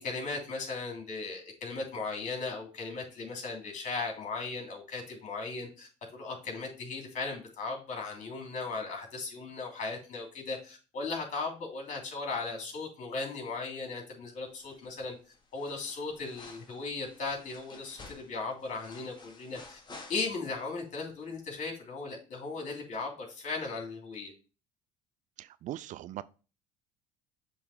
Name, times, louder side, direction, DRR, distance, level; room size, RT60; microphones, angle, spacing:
voice 1, 0.0-15.1 15.5-19.8 20.1-24.3, left 3 dB, 50° left, 3.1 m, -37 dB
sound 1, 14.6-15.1 15.3-20.7 21.0-21.1, left 3 dB, 25° left, 1.9 m, -52 dB
voice 2, 25.4-26.2, right 13 dB, 50° right, 0.4 m, -40 dB
7.1 x 3.6 x 4.9 m
hypercardioid pair, 75°, 16 cm